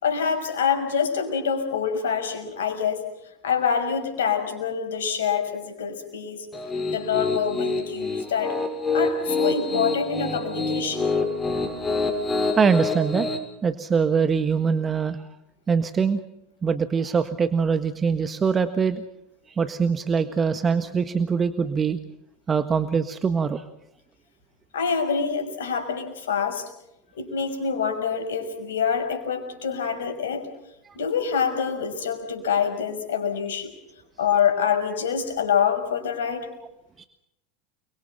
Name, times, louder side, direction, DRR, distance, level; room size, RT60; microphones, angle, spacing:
voice 1, 0.0-3.0 3.4-6.5 6.9-8.5 8.9-11.1 24.7-26.7 27.1-30.4 30.9-33.7 34.2-36.5, left 7 dB, 75° left, 6 dB, 5.8 m, -26 dB
Piano, 6.5-13.4, left 3 dB, 15° left, 6.6 m, -26 dB
voice 2, 12.6-13.3 13.6-15.2 15.7-16.2 16.6-19.0 19.5-22.0 22.5-23.6 30.8-30.9 37.0-37.1, right 6 dB, 25° right, 10 dB, 1.6 m, -23 dB
30.0 x 23.5 x 5.8 m, 0.83 s
hypercardioid pair, 80°, 0 cm